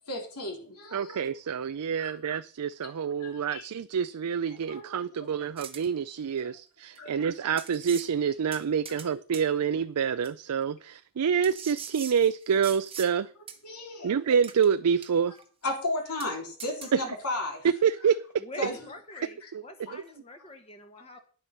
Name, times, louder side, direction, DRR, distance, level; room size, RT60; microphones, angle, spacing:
voice 1, 0.1-1.2 2.0-2.2 3.2-3.7 4.5-4.9 6.4-6.5 6.9-7.3 8.9-9.0 13.6-14.1 15.6-17.7 18.6-18.8 19.1-19.5 19.9-20.0 21.1-21.2, left 2 dB, 85° left, 3.6 m, -35 dB
voice 2, 0.9-13.3 14.0-15.3 17.8-18.4 19.5-19.6 19.9-20.0, right 7 dB, 85° right, 0.4 m, -27 dB
sound 1, 5.6-5.9 7.0-7.1 7.6-8.1 8.5-9.1 9.3-9.5 10.2-10.3 11.4-13.1 13.5-13.6 14.4-14.7 15.0-15.4 15.7-15.8 16.2-16.3 16.6-16.9, right 7 dB, 25° right, 1.1 m, -42 dB
voice 3, 18.4-21.2, left 1 dB, 25° left, 1.4 m, -45 dB
9.9 x 7.5 x 6.5 m
head